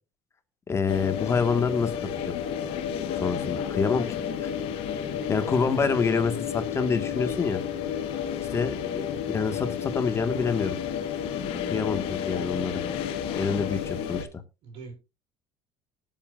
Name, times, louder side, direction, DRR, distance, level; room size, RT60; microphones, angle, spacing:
voice 1, 0.7-1.9 2.2-2.3 3.1-4.1 4.4-4.5 5.3-7.6 8.5-10.8 11.7-12.8 13.4-14.3, left 5 dB, 25° left, 1.7 m, -27 dB
sound 1, 0.9-14.2, left 8 dB, 70° left, 1.7 m, -31 dB
voice 2, 13.3-14.1 14.6-14.9, right 4 dB, 60° right, 5.3 m, -48 dB
19.5 x 7.4 x 2.5 m
supercardioid pair, 110°, 10 cm